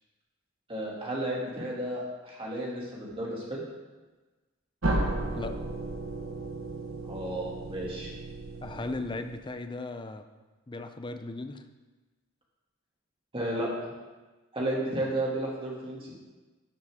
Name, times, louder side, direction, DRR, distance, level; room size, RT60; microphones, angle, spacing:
voice 1, 0.7-3.6 7.0-8.1 13.3-13.7 14.5-16.1, right 1 dB, 25° right, -4 dB, 2.3 m, -33 dB
sound 1, 4.8-9.6, right 2 dB, 70° right, 1.3 m, -34 dB
voice 2, 8.6-10.2 10.7-11.6, left 2 dB, 20° left, 8 dB, 0.5 m, -37 dB
12.5 x 7.3 x 3.6 m, 1.2 s
head